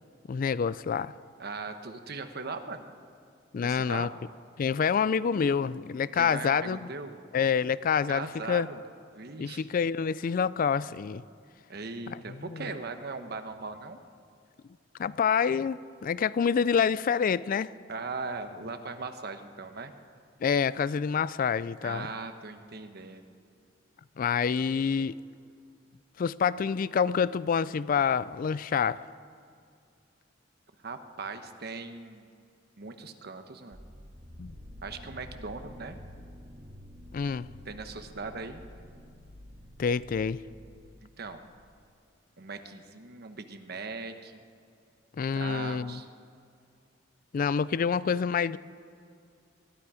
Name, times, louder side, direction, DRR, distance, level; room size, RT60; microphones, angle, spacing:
voice 1, 0.3-1.1 3.5-4.1 4.6-6.8 7.3-8.7 9.4-11.2 12.1-12.2 12.5-12.6 15.0-17.7 20.4-22.1 24.2-25.2 26.2-29.0 34.4-34.5 37.1-37.5 39.8-40.4 45.2-46.0 47.3-48.6, left 6 dB, 50° left, 18 dB, 0.3 m, -27 dB
voice 2, 1.4-2.8 3.6-4.1 6.1-7.2 8.1-8.8 9.1-9.7 11.7-14.0 17.9-19.9 21.8-23.3 30.8-32.3 32.8-33.8 34.8-36.0 37.6-38.6 41.0-41.4 42.4-44.4 45.3-46.1, right 4 dB, 60° right, 8 dB, 1.1 m, -39 dB
sound 1, 33.7-41.5, left 1 dB, 35° right, 1.6 m, -49 dB
21.5 x 13.0 x 5.0 m, 2.4 s
head